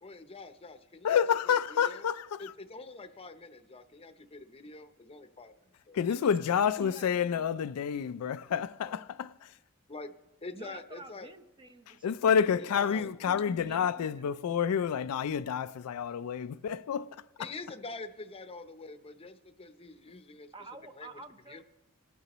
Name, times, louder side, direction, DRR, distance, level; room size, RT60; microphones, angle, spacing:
voice 1, 0.0-1.2 1.7-2.0 2.4-5.5 5.9-6.0 8.9-9.0 9.9-10.1 10.4-11.3 12.6-13.1 17.4-20.5 21.0-21.1 21.5-21.6, left 3 dB, 25° left, 0.7 m, -45 dB
voice 2, 1.0-2.5 5.9-9.6 12.0-17.2, left 7 dB, 80° left, 0.4 m, -29 dB
voice 3, 6.1-7.5 10.5-14.4 20.5-21.6, right 2 dB, 20° right, 0.6 m, -50 dB
27.5 x 9.4 x 3.0 m
head